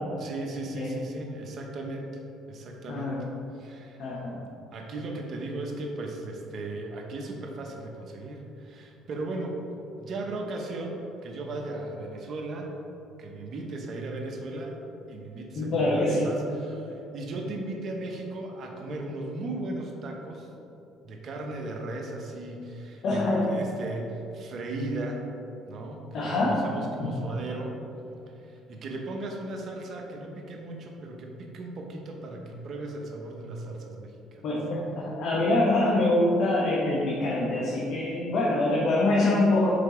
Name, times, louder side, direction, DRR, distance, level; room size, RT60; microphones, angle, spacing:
voice 1, 0.1-2.2 2.5-3.2 3.5-4.1 4.7-9.6 10.0-12.7 13.2-14.7 15.1-20.5 21.0-25.2 25.7-27.8 28.3-34.5, right 2 dB, 55° right, 1 dB, 0.9 m, -36 dB
voice 2, 4.0-4.4 15.6-16.3 23.0-23.5 26.1-26.6 27.0-27.1 34.4-39.7, left 2 dB, 60° left, -5 dB, 1.1 m, -25 dB
5.1 x 4.6 x 4.9 m, 2.8 s
supercardioid pair, 85°, 0 cm